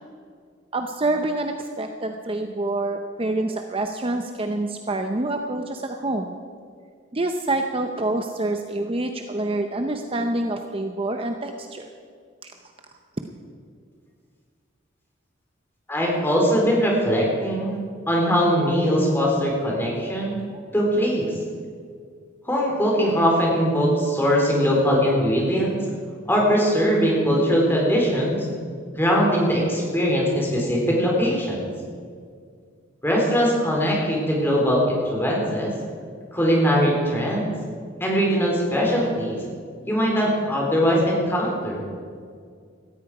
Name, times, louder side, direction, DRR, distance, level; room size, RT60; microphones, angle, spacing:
voice 1, 0.7-6.3 7.1-11.9 12.4-12.5 13.2-13.3 20.5-20.6, right 2 dB, 30° right, 5 dB, 0.7 m, -27 dB
voice 2, 15.9-17.8 18.1-20.4 20.7-21.3 22.4-25.9 26.3-28.5 29.0-31.7 33.0-35.7 36.3-37.5 38.0-39.4 39.8-41.8, equal, 10° left, -2 dB, 3.9 m, -21 dB
17.5 x 14.0 x 4.9 m, 2.1 s
head